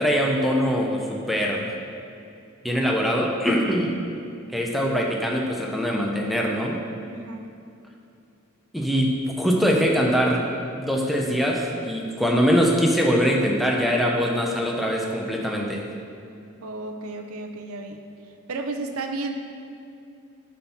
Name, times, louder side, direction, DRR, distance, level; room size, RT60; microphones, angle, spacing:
voice 1, 0.0-1.6 2.6-3.9 4.5-6.8 8.7-10.4 10.7-15.8, equal, ahead, -1 dB, 0.6 m, -22 dB
voice 2, 7.1-7.5 16.6-18.1 18.5-19.3, right 3 dB, 75° right, 5 dB, 0.6 m, -32 dB
9.1 x 4.3 x 5.7 m, 2.6 s
head